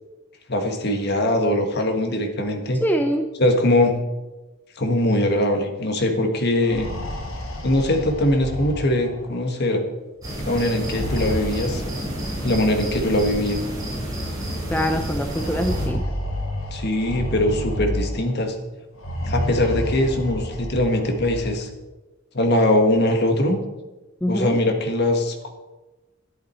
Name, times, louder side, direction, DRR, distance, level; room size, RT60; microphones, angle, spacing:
voice 1, 0.5-2.8 3.4-4.0 4.8-6.9 7.6-9.8 10.4-11.8 12.4-13.6 16.7-18.6 19.3-21.7 22.3-23.6 24.3-25.5, left 1 dB, 55° left, 5 dB, 1.5 m, -21 dB
voice 2, 2.8-3.3 14.7-16.0 24.2-24.6, equal, 10° left, 5 dB, 0.6 m, -24 dB
sound 1, 6.5-9.4 10.7-12.4 13.4-13.5 13.9-14.0 15.3-18.4 18.9-21.5, equal, 90° left, 2.3 m, -30 dB
sound 2, 10.2-15.9, equal, 20° right, 3.7 m, -30 dB
11.0 x 10.5 x 4.4 m, 1.1 s
head